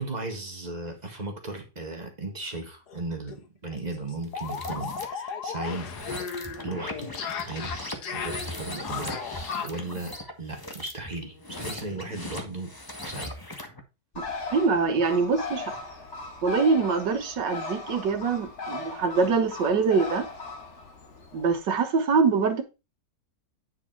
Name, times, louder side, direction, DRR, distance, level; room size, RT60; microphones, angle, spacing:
voice 1, 0.0-3.4 3.6-5.9 6.6-7.1 7.4-7.7 8.1-9.2 9.6-12.7 13.0-13.3, right 2 dB, 25° right, 1.8 m, -36 dB
sound 1, 2.9-3.0 3.3-3.4 3.7-9.9, left 6 dB, 70° left, 1.6 m, -35 dB
sound 2, 4.3-5.1 5.7-13.8, left 1 dB, 15° left, 1.1 m, -38 dB
Bird, 14.1-21.6, left 3 dB, 45° left, 1.6 m, -38 dB
voice 2, 14.5-15.8 16.4-20.3 21.3-22.6, right 5 dB, 75° right, 1.9 m, -24 dB
9.7 x 5.0 x 4.4 m
omnidirectional pair, 1.9 m